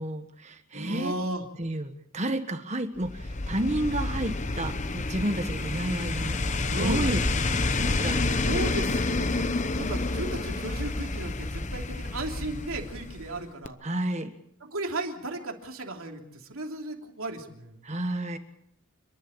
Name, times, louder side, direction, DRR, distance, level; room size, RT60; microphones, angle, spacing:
voice 1, 0.0-1.1 1.6-6.4 6.8-7.6 7.9-8.4 13.8-14.3 17.8-18.4, right 1 dB, 30° right, 8 dB, 1.4 m, -31 dB
voice 2, 0.7-1.4 4.5-4.7 6.7-7.1 8.4-9.4 9.8-13.8 14.6-17.8, right 2 dB, 75° right, 2 dB, 3.1 m, -35 dB
sound 1, 3.0-13.4 13.7-13.8, left 3 dB, 35° left, 0.9 m, -29 dB
29.5 x 11.5 x 8.9 m, 0.77 s
head